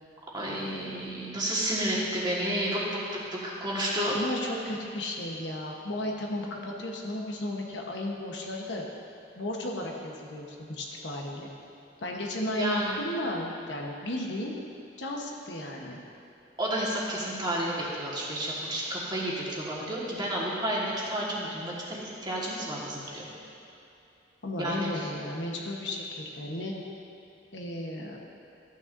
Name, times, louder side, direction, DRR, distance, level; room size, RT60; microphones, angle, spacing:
voice 1, 0.3-3.0 3.3-4.1 12.6-13.0 16.6-23.3 24.6-25.1, right 1 dB, 25° right, -5 dB, 1.6 m, -31 dB
voice 2, 4.0-8.8 9.4-11.5 12.0-14.5 15.0-16.0 24.4-26.7 27.5-28.2, left 1 dB, 70° left, 0 dB, 1.1 m, -34 dB
13.5 x 9.3 x 2.6 m, 2.7 s
head